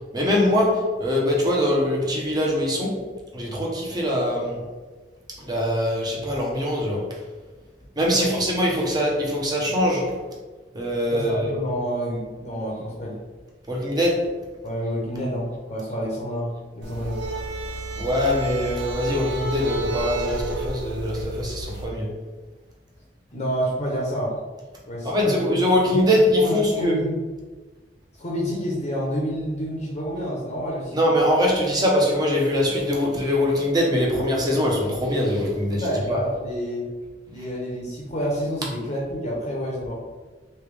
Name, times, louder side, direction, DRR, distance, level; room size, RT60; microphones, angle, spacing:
voice 1, 0.1-3.0 3.3-4.6 5.4-7.1 8.0-10.1 10.7-11.5 13.7-14.3 18.0-22.1 25.0-27.0 30.9-36.2, left 1 dB, 25° right, -3 dB, 0.8 m, -22 dB
voice 2, 11.1-13.2 14.6-17.2 23.3-24.3 24.9-25.6 25.8-27.2 28.2-31.0 35.6-36.8 37.3-39.9, equal, 40° left, -4 dB, 0.7 m, -29 dB
sound 1, 16.8-21.9, right 2 dB, 80° right, 0.6 m, -32 dB
3.2 x 2.9 x 3.4 m, 1.3 s
head